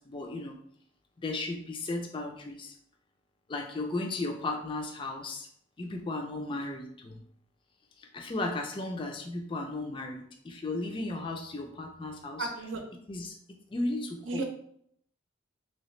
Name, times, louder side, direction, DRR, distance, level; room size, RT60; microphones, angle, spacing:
voice 1, 0.1-0.6 1.2-2.7 3.5-5.5 5.8-7.2 8.0-12.5 13.1-13.4 13.7-14.4, left 2 dB, 25° left, 2 dB, 0.4 m, -35 dB
voice 2, 12.4-12.8 14.2-14.4, right 3 dB, 80° right, 3 dB, 0.6 m, -33 dB
3.2 x 2.8 x 3.1 m, 0.68 s
head